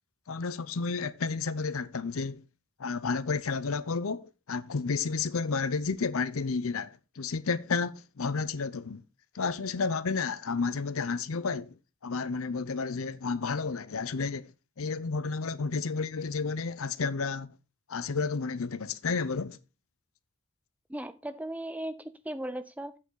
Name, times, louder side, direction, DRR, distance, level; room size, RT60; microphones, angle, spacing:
voice 1, 0.3-2.4 2.8-9.0 9.3-11.8 12.0-14.5 14.8-17.5 17.9-19.6, left 4 dB, 70° left, 0.6 m, -31 dB
voice 2, 20.9-23.0, right 1 dB, 5° right, 0.5 m, -37 dB
8.4 x 7.6 x 3.8 m
head